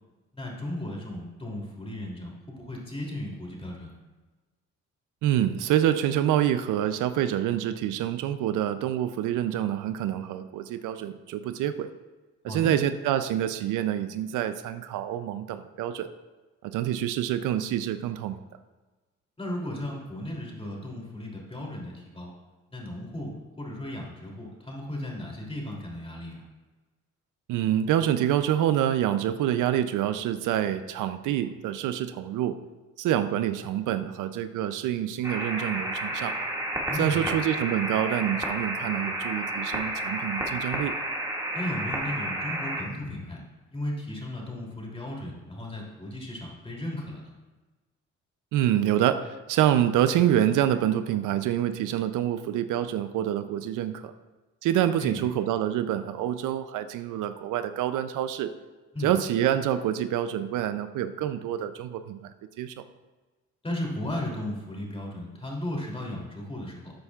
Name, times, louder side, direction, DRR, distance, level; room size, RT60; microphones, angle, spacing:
voice 1, 0.3-3.9 12.5-12.7 19.4-22.3 22.7-23.3 23.6-26.4 36.9-37.2 41.5-43.4 43.7-47.3 55.0-55.2 58.9-59.1 63.6-66.9, left 1 dB, 20° left, -2 dB, 2.9 m, -35 dB
voice 2, 5.2-11.9 12.4-16.1 16.6-18.4 27.5-32.6 33.0-36.4 37.0-41.0 48.5-54.1 54.6-58.5 59.0-62.3 62.6-62.7, right 11 dB, 85° right, 11 dB, 0.5 m, -26 dB
sound 1, 35.2-42.8, right 1 dB, 10° right, 2.0 m, -31 dB
13.0 x 8.1 x 2.4 m, 1.2 s
cardioid pair, 90°, 30 cm